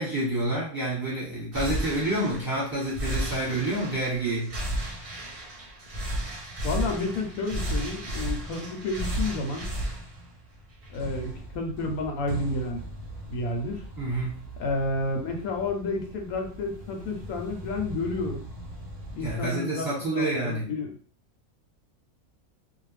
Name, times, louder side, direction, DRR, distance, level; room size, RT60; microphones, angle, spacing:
voice 1, 0.0-4.5 14.0-14.4 19.2-20.7, right 1 dB, 15° right, -6 dB, 1.0 m, -28 dB
sound 1, 1.5-19.5, right 1 dB, 60° right, 0.3 m, -35 dB
voice 2, 6.6-9.7 10.9-12.9 13.3-13.8 14.6-18.4 19.2-21.0, left 2 dB, 80° left, 3 dB, 1.0 m, -30 dB
2.4 x 2.1 x 3.1 m, 0.43 s
omnidirectional pair, 1.5 m